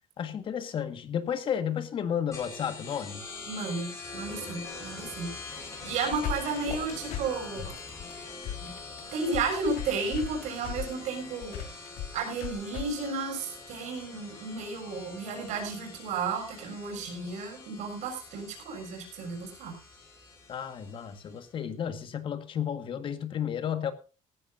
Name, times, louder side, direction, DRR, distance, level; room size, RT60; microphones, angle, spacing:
voice 1, 0.2-3.2 20.5-23.9, left 8 dB, 40° left, 10 dB, 1.7 m, -32 dB
sound 1, 2.3-21.5, left 3 dB, 25° left, 6.0 m, -44 dB
voice 2, 3.5-5.3 5.8-7.7 8.6-8.7 9.1-11.6 12.1-19.8, right 4 dB, 70° right, 2 dB, 6.8 m, -33 dB
sound 2, 5.8-12.8, left 10 dB, 80° left, 3.3 m, -37 dB
17.0 x 15.5 x 2.7 m, 0.33 s
cardioid pair, 155°, 13 cm